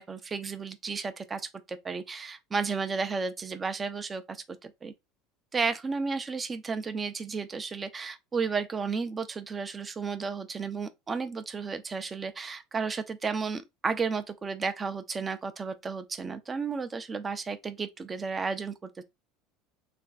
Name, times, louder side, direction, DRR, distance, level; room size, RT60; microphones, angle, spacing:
voice 1, 0.0-4.9 5.5-19.0, right 5 dB, 25° right, 0.6 m, -33 dB
3.4 x 2.2 x 4.0 m
supercardioid pair, 95°, 0 cm